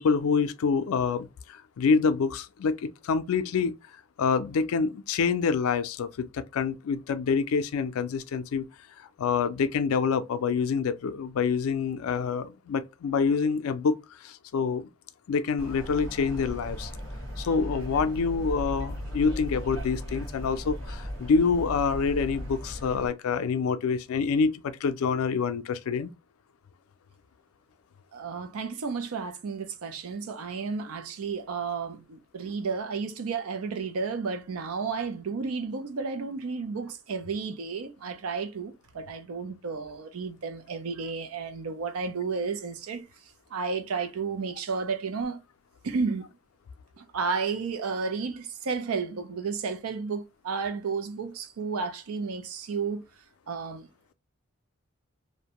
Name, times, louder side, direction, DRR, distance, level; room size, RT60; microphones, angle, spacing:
voice 1, 0.0-3.7 4.2-8.7 9.0-14.8 15.3-16.9 17.4-26.1, left 5 dB, 85° left, 0.4 m, -27 dB
sound 1, 15.6-23.1, equal, 65° right, 1.5 m, -37 dB
voice 2, 28.1-43.1 43.5-45.4 45.8-46.2 47.0-53.0 53.5-53.9, right 5 dB, 85° right, 0.5 m, -32 dB
2.5 x 2.1 x 2.8 m
head